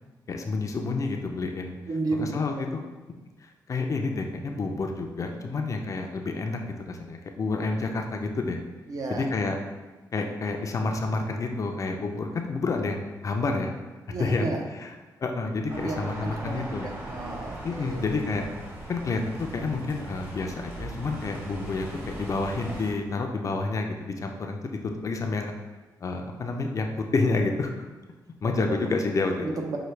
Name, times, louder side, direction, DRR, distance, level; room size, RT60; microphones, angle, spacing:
voice 1, 0.3-1.8 2.1-2.9 3.7-8.6 9.1-9.6 10.1-13.7 14.2-15.0 15.2-16.9 17.6-18.4 18.9-25.5 26.0-27.9 28.4-29.5, left 3 dB, 45° left, 4 dB, 0.5 m, -29 dB
voice 2, 1.9-2.3 8.9-9.3 14.1-14.6 15.7-18.1 28.4-28.8 29.4-29.8, right 3 dB, 55° right, 2 dB, 0.6 m, -33 dB
sound 1, 15.7-22.9, right 1 dB, 25° right, 1.0 m, -39 dB
5.6 x 2.2 x 3.2 m, 1.2 s
cardioid pair, 95°, 8 cm